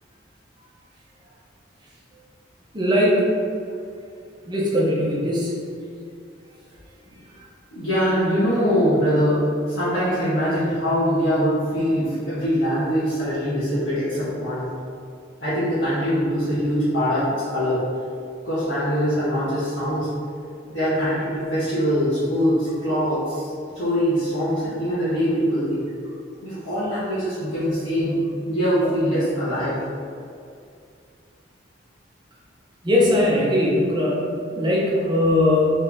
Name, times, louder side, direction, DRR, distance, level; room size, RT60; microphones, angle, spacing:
voice 1, 2.7-3.2 4.5-5.6 32.8-35.7, left 1 dB, 25° right, -5 dB, 0.8 m, -20 dB
voice 2, 7.7-14.7 15.4-17.8 18.4-20.1 20.7-23.5 23.7-25.8 26.4-28.2 28.5-29.8, equal, 80° left, -13 dB, 1.2 m, -23 dB
3.8 x 3.2 x 3.4 m, 2.3 s
head